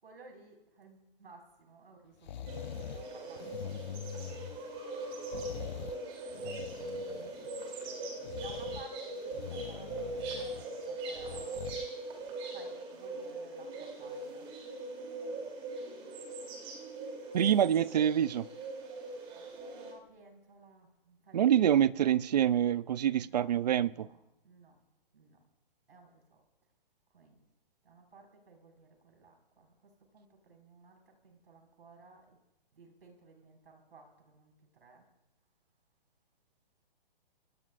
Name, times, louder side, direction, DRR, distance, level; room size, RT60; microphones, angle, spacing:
voice 1, 0.0-2.6 2.9-4.2 6.9-7.3 8.4-11.6 12.5-14.5 19.3-22.1 23.2-23.5 23.9-24.2 24.4-24.8 25.1-25.4 25.9-26.4 27.1-27.4 27.8-32.4 32.7-34.5 34.8-35.1, right 4 dB, 80° right, 5.2 m, -57 dB
sound 1, 2.2-3.1 3.4-4.8 5.3-6.0 6.3-7.6 8.2-8.9 9.3-10.7 11.1-11.9 12.3-12.4, left 10 dB, 50° left, 0.4 m, -44 dB
sound 2, 2.5-19.9, right 2 dB, 20° right, 3.1 m, -41 dB
voice 2, 17.3-18.5 21.3-24.1, right 10 dB, 45° right, 0.5 m, -26 dB
26.5 x 18.5 x 2.5 m
hypercardioid pair, 160°, 29 cm